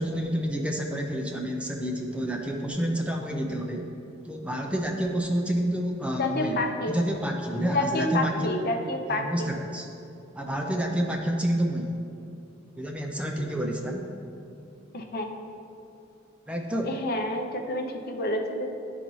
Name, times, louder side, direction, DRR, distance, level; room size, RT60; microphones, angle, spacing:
voice 1, 0.0-3.8 4.2-6.6 6.9-8.3 9.1-9.8 10.3-12.0 12.8-14.0 16.5-16.9, equal, 5° right, 2 dB, 0.4 m, -29 dB
voice 2, 6.2-6.9 7.7-9.3 14.9-15.3 16.9-18.7, left 1 dB, 50° left, 3 dB, 0.6 m, -28 dB
11.0 x 3.9 x 3.1 m, 2.8 s
head